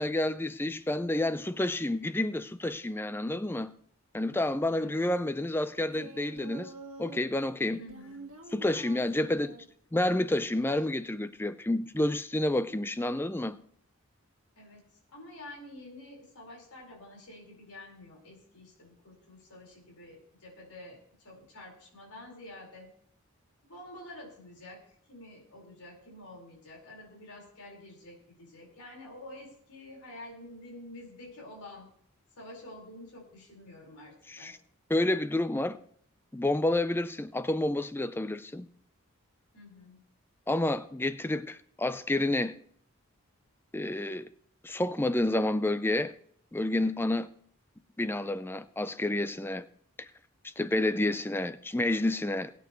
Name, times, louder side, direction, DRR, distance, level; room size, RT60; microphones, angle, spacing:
voice 1, 0.0-3.7 4.1-6.7 7.0-7.8 8.5-9.6 9.9-13.6 34.3-34.6 34.9-35.8 36.3-38.7 40.5-42.6 43.7-44.3 44.6-46.1 46.5-47.3 48.0-49.7 50.0-50.1 50.4-52.6, left 1 dB, 10° left, 0.4 m, -29 dB
voice 2, 4.8-5.1 7.8-8.2 14.6-22.9 23.7-24.8 25.1-31.9 32.4-34.5 39.5-40.0, left 1 dB, 85° left, 4.6 m, -48 dB
Singing, 5.9-7.2 7.7-9.7 10.5-11.1, right 3 dB, 65° right, 1.5 m, -47 dB
21.0 x 9.3 x 3.1 m
head